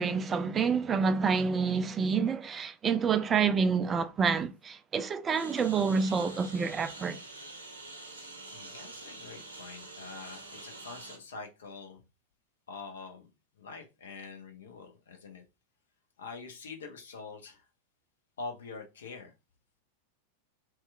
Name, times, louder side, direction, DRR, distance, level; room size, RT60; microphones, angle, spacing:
voice 1, 0.0-7.2, right 5 dB, 20° right, 0.3 m, -28 dB
Engine, 5.3-11.2, right 2 dB, 75° right, 0.8 m, -46 dB
voice 2, 8.0-12.0 12.7-13.3 13.6-15.4 16.2-17.7 18.4-19.3, left 4 dB, 65° left, 0.6 m, -45 dB
2.8 x 2.3 x 3.2 m
figure-of-eight pair, 90°, 0 cm